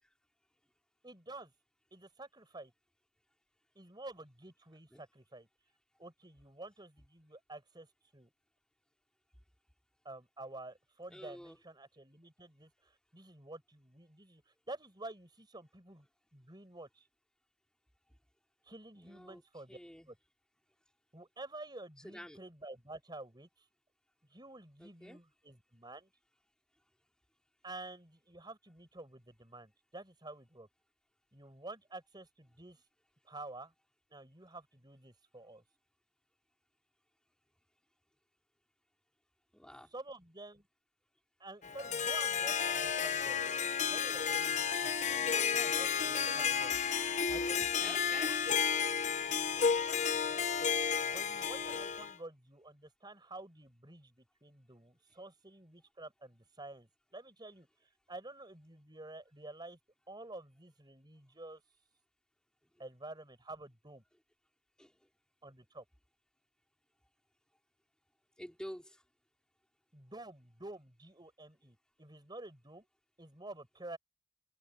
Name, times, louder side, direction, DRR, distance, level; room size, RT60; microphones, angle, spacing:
voice 1, 1.0-1.5 1.9-2.7 3.8-5.5 6.0-7.9 8.1-8.3 10.0-17.1 18.6-19.8 20.1-20.2 21.1-23.7 24.3-26.1 27.6-30.7 31.3-32.8 33.2-33.7 34.1-35.6 39.9-40.7 41.4-43.4 43.9-46.8 47.3-48.2 51.0-57.7 58.1-59.8 60.1-61.6 62.8-64.0 65.4-65.8 69.9-72.9 73.2-74.0, right 2 dB, 20° right, 5.5 m, -50 dB
voice 2, 11.1-11.6 19.0-19.4 19.7-20.1 22.0-22.4 24.8-25.2 39.5-39.9 47.3-47.4 47.8-48.4 64.8-64.9 68.4-69.0, equal, 5° left, 4.6 m, -48 dB
Harp, 41.6-52.1, left 7 dB, 40° left, 1.1 m, -32 dB
head